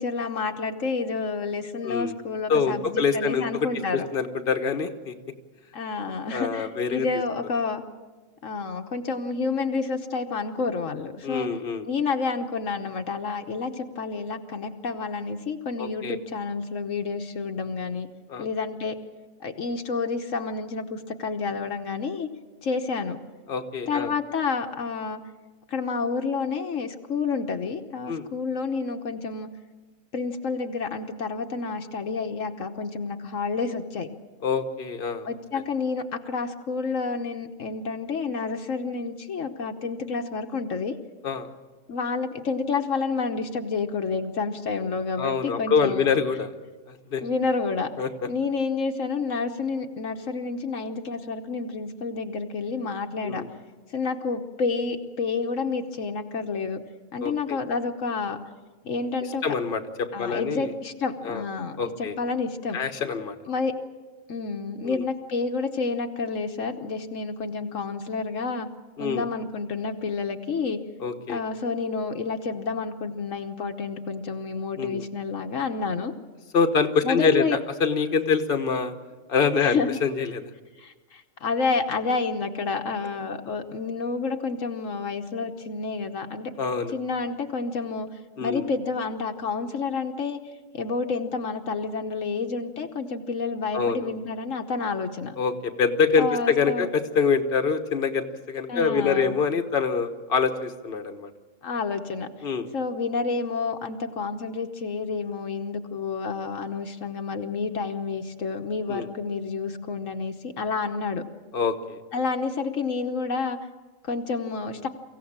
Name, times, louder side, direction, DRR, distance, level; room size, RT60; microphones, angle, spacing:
voice 1, 0.0-4.1 5.7-7.8 8.4-11.5 11.9-18.1 18.4-19.0 19.4-22.3 22.6-23.2 23.9-25.2 25.7-29.5 30.1-34.1 35.3-40.9 41.9-46.1 47.2-47.9 48.3-53.4 53.9-56.8 57.1-58.4 58.8-59.4 60.1-62.8 63.5-63.7 64.3-68.7 69.0-70.8 71.3-76.1 77.0-77.6 79.6-79.9 80.8-86.5 86.9-88.1 88.4-90.4 90.7-95.3 96.2-96.9 98.7-99.4 101.6-102.5 102.7-111.2 112.1-113.6 114.0-114.9, left 4 dB, 70° left, 5 dB, 1.4 m, -29 dB
voice 2, 1.8-2.2 2.5-3.7 3.9-5.1 6.3-7.2 11.2-11.9 15.8-16.2 18.3-18.5 23.5-24.1 28.1-28.3 34.4-35.3 35.5-35.6 41.2-41.5 45.2-46.5 46.9-47.2 48.0-48.1 53.2-53.5 57.2-57.6 59.4-60.7 61.2-61.4 61.8-62.2 62.7-63.4 64.8-65.0 69.0-69.2 71.0-71.4 74.8-75.1 76.5-77.5 77.8-78.9 79.3-80.4 86.6-87.0 88.4-88.6 93.7-94.1 95.4-101.3 102.4-102.7 108.9-109.1 111.5-112.0, left 5 dB, 45° left, 7 dB, 1.4 m, -25 dB
24.0 x 16.0 x 8.8 m, 1.3 s
omnidirectional pair, 1.4 m